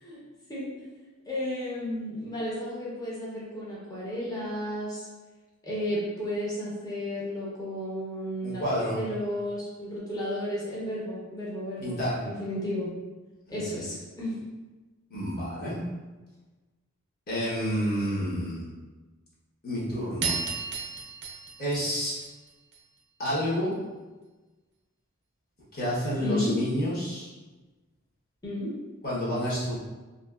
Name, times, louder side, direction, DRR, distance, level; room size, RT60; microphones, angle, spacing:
voice 1, 1.3-5.1 5.6-8.6 8.9-12.9 13.5-14.4 26.2-26.6 28.4-28.7, left 1 dB, 20° left, -7 dB, 0.6 m, -33 dB
voice 2, 8.4-9.0 11.8-12.2 13.5-13.7 15.1-15.8 17.3-18.7 19.6-20.4 21.6-22.2 23.2-23.7 25.7-27.3 29.0-29.8, equal, 45° left, -8 dB, 1.0 m, -29 dB
sound 1, 20.2-22.8, right 5 dB, 55° right, 0.5 m, -34 dB
2.7 x 2.7 x 2.3 m, 1.2 s
head